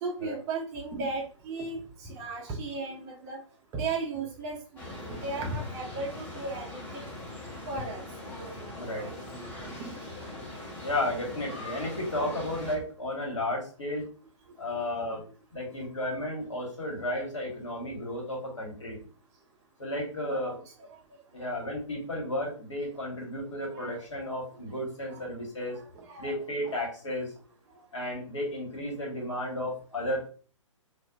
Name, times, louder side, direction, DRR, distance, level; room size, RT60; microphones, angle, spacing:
voice 1, 0.0-3.4 3.7-4.6 4.9-7.0 7.7-8.0 8.4-8.7 9.0-10.0 20.2-20.6 23.7-24.0 25.1-25.2 25.7-26.3 26.6-26.9, right 3 dB, 20° right, 0 dB, 0.5 m, -36 dB
sound 1, 4.8-12.7, left 2 dB, 10° left, 0.9 m, -41 dB
voice 2, 8.8-9.1 10.8-14.1 14.6-15.2 15.5-19.0 19.8-20.6 21.3-25.8 26.2-27.3 27.9-30.3, left 1 dB, 65° left, -1 dB, 1.6 m, -33 dB
4.1 x 2.4 x 2.4 m, 0.39 s
figure-of-eight pair, 125°, 16 cm